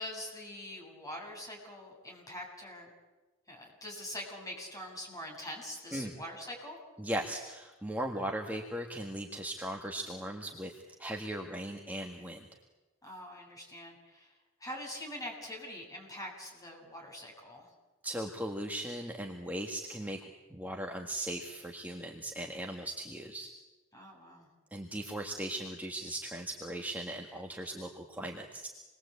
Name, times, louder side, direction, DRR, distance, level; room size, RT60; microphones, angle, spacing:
voice 1, 0.0-2.9 3.5-6.8 13.0-17.7 23.9-24.5, left 1 dB, 15° left, 0 dB, 7.8 m, -44 dB
voice 2, 7.0-12.5 18.0-20.2 20.5-23.5 24.7-28.7, right 1 dB, 10° right, 1 dB, 1.8 m, -38 dB
28.5 x 21.5 x 8.4 m, 1.2 s
head